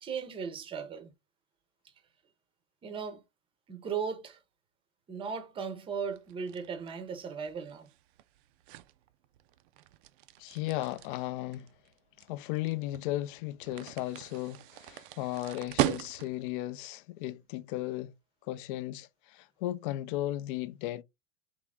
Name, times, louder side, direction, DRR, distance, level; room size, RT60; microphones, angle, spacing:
voice 1, 0.0-1.1 2.8-3.2 3.7-4.4 5.1-7.9, right 6 dB, 15° right, 0.6 m, -37 dB
sound 1, 6.1-16.5, right 14 dB, 50° right, 0.4 m, -39 dB
voice 2, 10.4-11.7 12.2-18.1 18.5-21.0, left 15 dB, 50° left, 0.4 m, -35 dB
3.6 x 3.1 x 3.5 m
supercardioid pair, 155°, 34 cm